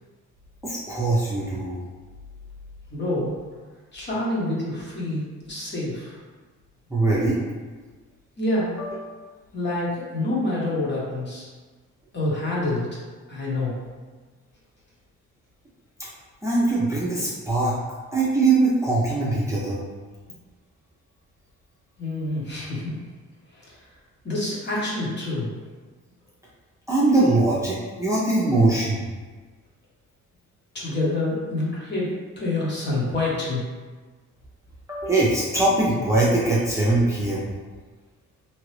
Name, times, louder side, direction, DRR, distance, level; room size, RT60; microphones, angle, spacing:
voice 1, 0.6-1.8 6.9-7.4 8.8-9.0 16.0-16.1 16.4-17.7 18.1-19.8 26.9-29.0 34.9-37.5, right 2 dB, 10° right, -8 dB, 0.6 m, -22 dB
voice 2, 2.9-3.3 3.9-6.2 8.4-8.8 9.5-11.5 12.1-13.0 13.3-13.8 22.0-23.0 23.5-23.8 24.2-25.5 30.7-33.6, left 2 dB, 35° left, -5 dB, 1.1 m, -27 dB
2.9 x 2.4 x 3.2 m, 1.4 s
cardioid pair, 90°, 30 cm